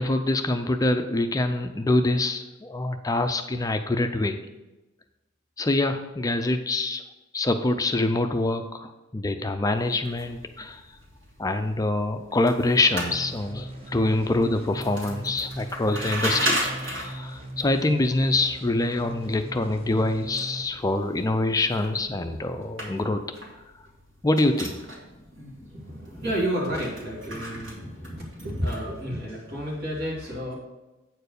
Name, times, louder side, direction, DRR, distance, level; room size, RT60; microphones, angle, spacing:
voice 1, 0.0-4.4 5.6-7.0 7.3-10.8 11.4-23.2 24.2-24.8 25.6-25.7, left 2 dB, 20° left, 7 dB, 0.4 m, -25 dB
sound 1, 9.7-29.1, right 1 dB, 75° right, 3.0 m, -37 dB
sound 2, 12.8-20.6, right 1 dB, 30° right, 1.2 m, -39 dB
voice 2, 25.6-30.5, equal, 55° right, -5 dB, 2.6 m, -31 dB
8.8 x 4.6 x 6.6 m, 1.1 s
head